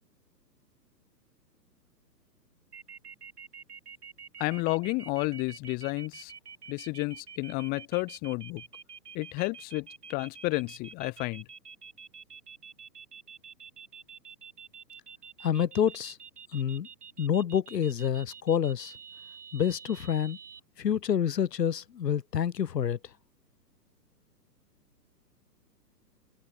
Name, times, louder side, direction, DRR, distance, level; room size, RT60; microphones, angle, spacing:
sound 1, 2.7-20.6, right 6 dB, 65° right, 4.1 m, -47 dB
voice 1, 4.4-6.3 6.7-8.6 9.1-11.4, left 26 dB, 20° left, 1.0 m, -31 dB
voice 2, 15.4-16.2 16.5-16.9 17.2-18.9 19.5-20.4 20.8-23.0, left 8 dB, 75° left, 0.9 m, -28 dB
figure-of-eight pair, 120°, 50 cm